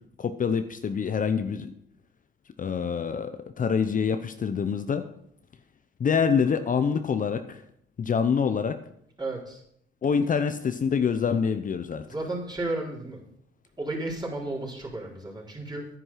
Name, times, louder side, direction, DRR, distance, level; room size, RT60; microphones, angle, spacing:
voice 1, 0.2-1.7 2.6-5.0 6.0-7.6 8.0-8.8 10.0-12.0, left 6 dB, 40° left, 9 dB, 0.8 m, -26 dB
voice 2, 9.2-9.6 12.1-13.2 13.8-15.9, right 2 dB, 20° right, -3 dB, 4.3 m, -33 dB
9.8 x 9.8 x 5.8 m, 0.71 s
cardioid pair, 90°, 20 cm